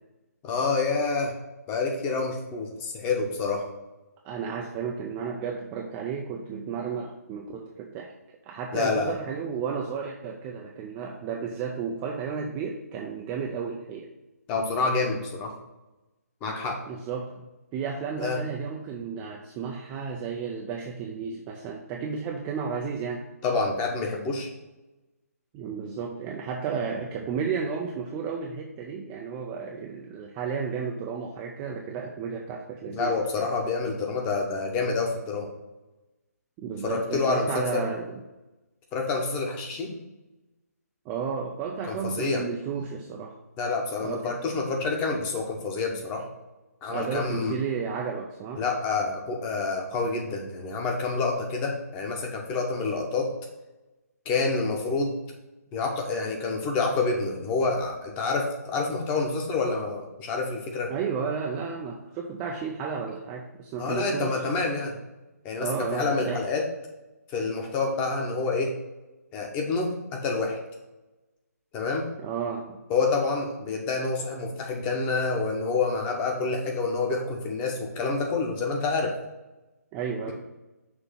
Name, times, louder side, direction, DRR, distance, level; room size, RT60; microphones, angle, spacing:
voice 1, 0.4-1.3 1.7-3.7 8.7-9.1 14.5-15.5 16.4-16.8 18.2-18.4 23.4-24.5 32.9-35.5 36.8-37.8 38.9-40.0 41.8-42.4 43.6-46.3 46.8-47.6 48.6-53.3 54.2-55.2 55.7-60.9 63.8-64.9 65.4-66.6 67.3-68.8 69.3-70.6 71.7-72.1 72.9-79.2, left 4 dB, 15° left, 1 dB, 0.9 m, -28 dB
voice 2, 4.2-8.1 8.5-14.1 16.9-17.5 17.7-23.3 25.5-33.5 36.6-38.2 41.1-43.4 44.0-44.4 46.9-48.6 60.9-64.4 65.6-66.5 72.2-72.8 79.9-80.3, right 6 dB, 15° right, 0 dB, 0.3 m, -33 dB
6.0 x 2.8 x 5.6 m, 1.0 s
figure-of-eight pair, 150°, 9 cm